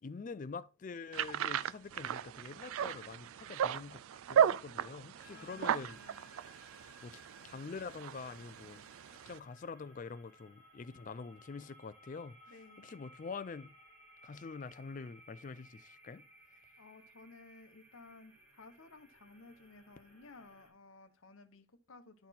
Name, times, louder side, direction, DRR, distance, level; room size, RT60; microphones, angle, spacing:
voice 1, 0.0-4.0 4.3-6.0 6.4-6.5 7.0-8.8 9.3-12.4 12.8-13.7 14.2-16.2, left 4 dB, 35° left, 0.3 m, -45 dB
sound 1, 1.1-9.4, right 9 dB, 75° right, 0.3 m, -35 dB
sound 2, 5.2-20.7, equal, 50° right, 5.2 m, -61 dB
voice 2, 5.3-6.3 8.7-8.9 12.5-12.9 16.8-22.3, left 3 dB, 70° left, 0.9 m, -57 dB
11.5 x 4.2 x 4.2 m
head